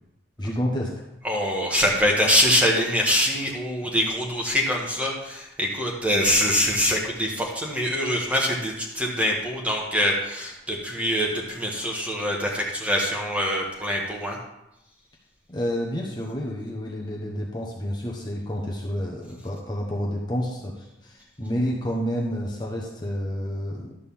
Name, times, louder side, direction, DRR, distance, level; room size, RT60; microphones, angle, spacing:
voice 1, 0.4-0.9 15.5-20.7 21.0-23.9, equal, 20° left, -3 dB, 1.1 m, -29 dB
voice 2, 1.2-14.4, equal, 5° right, -2 dB, 1.4 m, -24 dB
11.5 x 4.0 x 7.0 m, 0.88 s
head